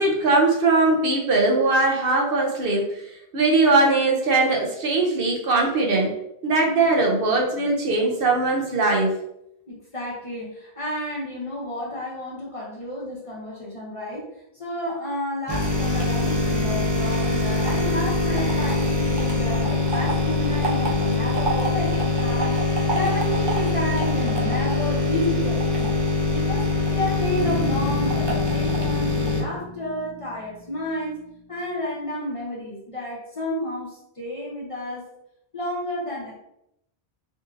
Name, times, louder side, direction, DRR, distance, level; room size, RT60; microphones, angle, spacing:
voice 1, 0.0-2.8 3.3-6.1 6.4-9.1, right 2 dB, 65° right, 0 dB, 0.9 m, -20 dB
voice 2, 9.7-22.6 22.9-26.0 26.3-26.7 26.9-31.2 31.5-35.0 35.5-36.4, left 1 dB, 35° left, -4 dB, 0.7 m, -31 dB
sound 1, 15.5-29.4, left 2 dB, 30° right, 0.5 m, -23 dB
Bass guitar, 27.4-31.5, equal, 90° right, 1.5 m, -36 dB
3.6 x 2.6 x 2.5 m, 0.80 s
omnidirectional pair, 1.1 m